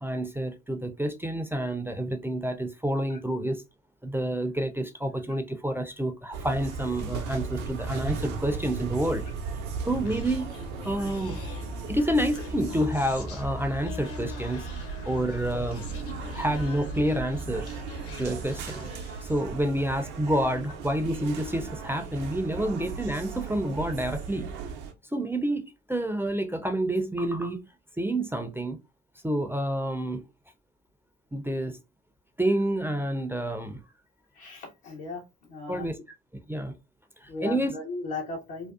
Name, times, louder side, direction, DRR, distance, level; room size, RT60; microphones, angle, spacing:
voice 1, 0.0-3.6 4.0-9.2 9.8-10.5 10.8-11.4 11.9-14.7 15.1-15.9 16.3-17.7 18.2-18.9 19.2-24.5 25.1-27.6 28.0-28.8 29.2-30.2 31.3-31.8 32.4-33.8 35.7-35.9 36.5-36.7 37.2-37.7, right 1 dB, 5° right, 0.4 m, -28 dB
sound 1, 6.3-24.9, right 5 dB, 75° right, 0.5 m, -37 dB
Human voice, 10.1-19.5, left 2 dB, 45° left, 0.6 m, -40 dB
voice 2, 34.3-35.8 37.3-38.7, left 3 dB, 75° left, 0.9 m, -37 dB
2.6 x 2.2 x 2.3 m
figure-of-eight pair, 45°, 34 cm